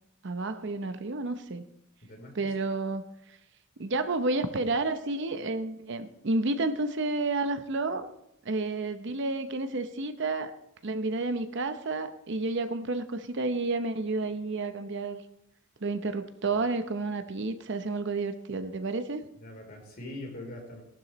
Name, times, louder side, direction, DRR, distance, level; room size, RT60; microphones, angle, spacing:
voice 1, 0.2-1.6 2.3-3.0 3.8-8.1 8.4-10.5 10.8-15.2 15.8-19.2, right 3 dB, 65° right, 9 dB, 0.8 m, -30 dB
voice 2, 2.0-2.5 16.5-16.6 19.4-20.8, left 1 dB, 50° left, 1 dB, 3.8 m, -43 dB
18.0 x 12.0 x 3.1 m, 0.81 s
head